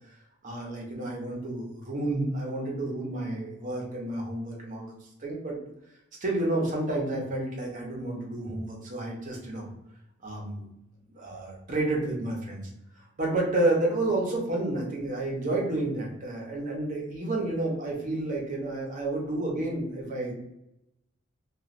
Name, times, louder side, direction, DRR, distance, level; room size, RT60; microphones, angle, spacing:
voice 1, 0.4-4.9 5.2-5.6 6.2-9.7 10.2-10.6 11.1-12.6 12.9-20.3, right 2 dB, 40° right, -2 dB, 0.8 m, -30 dB
3.0 x 2.4 x 2.5 m, 0.86 s
head